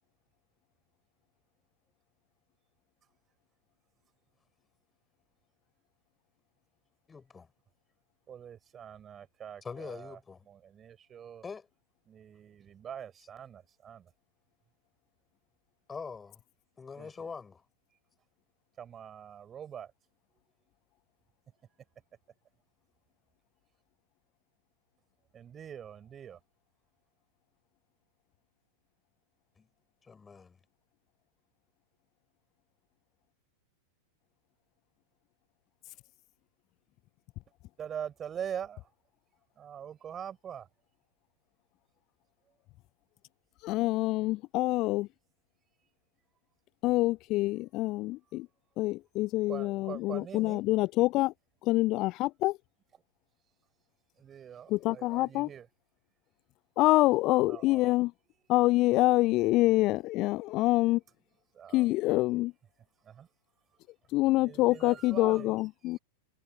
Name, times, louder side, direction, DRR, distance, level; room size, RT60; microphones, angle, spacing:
voice 1, 7.1-7.5 9.6-10.5 11.4-11.7 15.9-16.4 16.8-17.6 29.6-29.7 30.0-30.6, left 5 dB, 15° left, 6.5 m, -43 dB
voice 2, 8.3-10.2 10.5-11.4 12.1-14.1 17.0-17.1 18.8-19.9 25.3-26.4 37.8-38.9 39.6-40.7 49.5-50.6 54.2-55.7 57.5-58.0 60.8-60.9 61.5-61.9 63.0-63.3 64.4-65.6 65.9-66.0, right 8 dB, 25° right, 5.9 m, -43 dB
voice 3, 43.6-45.1 46.8-48.5 48.8-51.3 51.7-52.6 54.7-55.5 56.8-58.1 58.5-61.0 61.7-62.5 64.1-66.0, left 19 dB, 40° left, 0.6 m, -26 dB
figure-of-eight pair, 90°, 0 cm